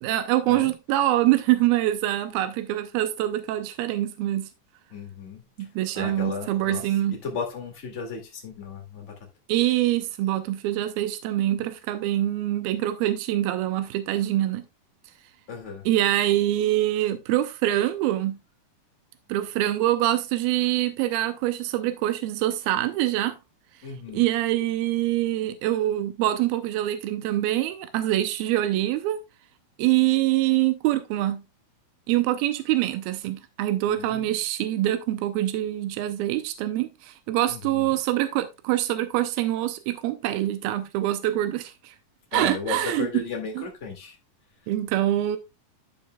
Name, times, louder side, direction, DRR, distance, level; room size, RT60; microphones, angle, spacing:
voice 1, 0.0-4.5 5.6-7.2 9.5-14.6 15.9-18.4 19.3-23.4 24.1-29.2 29.8-31.4 32.1-41.9 42.3-43.2 43.6-43.7 44.7-45.4, right 14 dB, 85° right, 2.6 m, -25 dB
voice 2, 4.9-5.4 5.9-6.8 7.2-9.1 15.5-15.8 23.8-24.2 33.9-34.4 37.5-37.9 42.3-44.2, left 5 dB, 25° left, 1.6 m, -35 dB
13.0 x 5.2 x 2.3 m
omnidirectional pair, 4.2 m